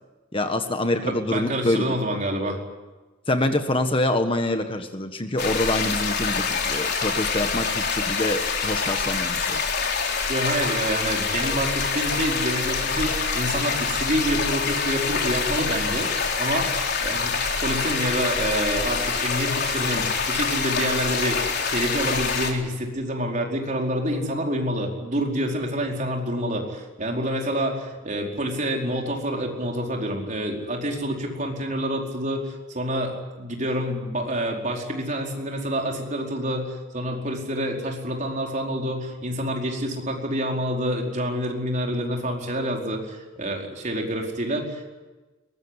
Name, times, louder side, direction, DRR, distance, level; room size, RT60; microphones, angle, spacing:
voice 1, 0.3-2.0 3.3-9.6, left 1 dB, 25° left, 7 dB, 1.4 m, -25 dB
voice 2, 1.1-2.6 10.3-16.7 17.0-44.9, equal, 40° right, 1 dB, 4.7 m, -27 dB
sound 1, 5.4-22.5, left 5 dB, 55° left, 4.1 m, -26 dB
22.5 x 21.5 x 9.9 m, 1.2 s
head